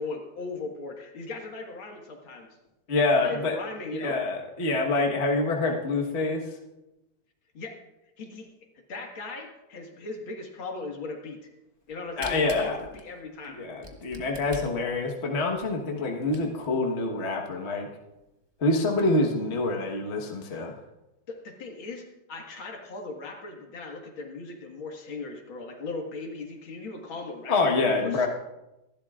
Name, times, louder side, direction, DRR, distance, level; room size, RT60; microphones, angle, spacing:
voice 1, 0.0-2.5 3.2-4.2 7.5-7.8 8.2-8.5 8.9-11.4 11.9-13.6 21.3-28.3, left 3 dB, 75° left, 2 dB, 2.5 m, -38 dB
voice 2, 2.9-3.5 3.9-6.6 12.2-12.8 13.6-17.9 18.6-20.7 27.5-28.3, left 2 dB, 35° left, 0 dB, 1.4 m, -26 dB
Camera, 11.8-16.8 17.3-17.4 17.6-17.7 18.2-18.3 18.6-19.0, equal, 15° right, 1.3 m, -44 dB
26.0 x 12.0 x 2.5 m, 0.97 s
omnidirectional pair, 2.2 m